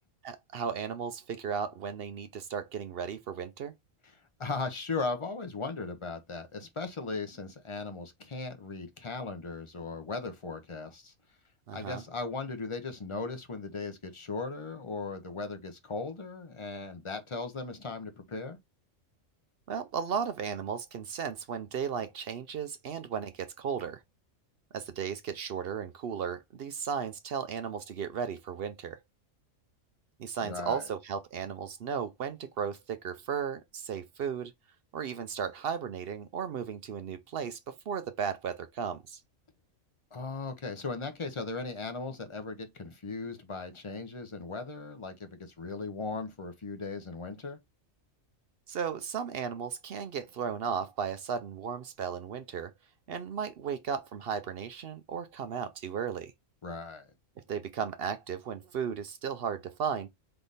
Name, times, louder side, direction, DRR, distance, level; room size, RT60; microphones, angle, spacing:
voice 1, 0.2-3.7 11.7-12.0 19.7-24.0 24.7-29.0 30.2-34.5 34.9-39.2 48.7-52.7 53.1-56.3 57.5-60.1, right 7 dB, 60° right, 0.7 m, -35 dB
voice 2, 4.4-11.1 11.7-18.6 30.4-30.9 40.1-47.6 56.6-57.1, left 3 dB, 30° left, 0.6 m, -37 dB
3.7 x 3.3 x 3.9 m
omnidirectional pair, 1.3 m